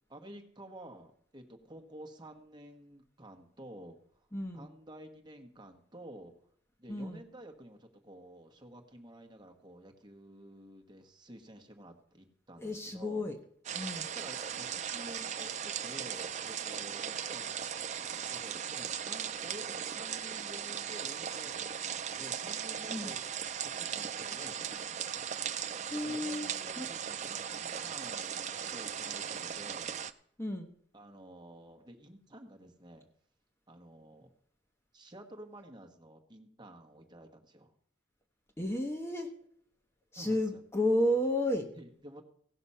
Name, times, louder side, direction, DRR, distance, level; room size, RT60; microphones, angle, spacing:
voice 1, 0.1-4.3 4.5-6.3 6.8-13.3 14.1-17.5 18.0-23.2 23.7-25.0 25.9-28.4 28.7-30.0 30.9-33.0 33.7-34.3 34.9-37.7 40.2-40.6 41.7-42.2, right 1 dB, 25° right, 4 dB, 1.3 m, -51 dB
voice 2, 4.3-4.7 6.9-7.2 12.6-13.4 13.7-14.1 22.9-23.1 25.9-26.5 26.8-26.9 30.4-30.7 38.6-39.3 40.1-41.7, left 1 dB, 15° left, 3 dB, 0.9 m, -32 dB
sound 1, 13.6-30.1, right 8 dB, 40° right, 0.4 m, -38 dB
16.5 x 6.0 x 5.6 m, 0.63 s
head